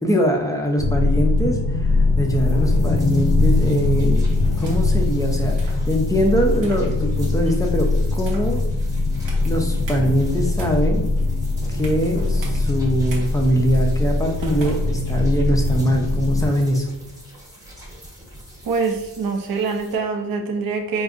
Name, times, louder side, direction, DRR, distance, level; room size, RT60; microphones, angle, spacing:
voice 1, 0.0-4.2 4.6-8.6 9.5-11.1 11.7-16.9, equal, 10° left, 2 dB, 0.4 m, -22 dB
sound 1, 0.8-16.5, left 2 dB, 90° left, 0.7 m, -21 dB
sound 2, 2.3-20.0, equal, 10° right, 0.9 m, -44 dB
sound 3, 4.4-5.0 5.6-5.8 6.6-6.9 7.4-7.7 8.2-8.6 9.3-9.5 9.9-10.0 10.4-12.1 12.4-12.6 13.1-13.2 13.7-13.9 14.4-15.5, right 2 dB, 90° right, 0.9 m, -36 dB
voice 2, 18.6-21.0, right 4 dB, 55° right, 4 dB, 0.5 m, -24 dB
4.8 x 2.6 x 2.4 m, 0.93 s
wide cardioid pair, 155°, 43 cm